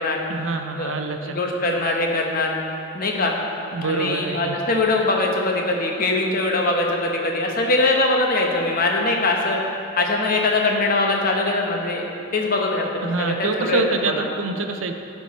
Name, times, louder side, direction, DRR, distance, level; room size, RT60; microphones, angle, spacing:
voice 1, 0.3-1.4 3.7-4.6 13.0-14.9, right 3 dB, 70° right, 6 dB, 0.6 m, -26 dB
voice 2, 1.2-2.5 2.9-3.3 3.8-9.6 10.0-12.0 12.3-14.2, left 2 dB, 45° left, 1 dB, 1.0 m, -22 dB
13.0 x 4.6 x 4.1 m, 2.7 s
head